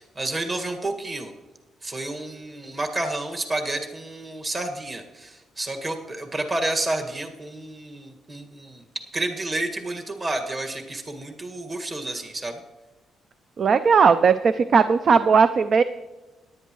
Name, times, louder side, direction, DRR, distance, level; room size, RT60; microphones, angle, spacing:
voice 1, 0.0-1.3 1.8-8.8 9.1-12.6, right 2 dB, 30° right, 3 dB, 1.8 m, -30 dB
voice 2, 13.6-15.8, right 5 dB, 50° right, 12 dB, 0.4 m, -17 dB
17.5 x 11.0 x 3.1 m, 1.1 s
cardioid pair, 90°, 0 cm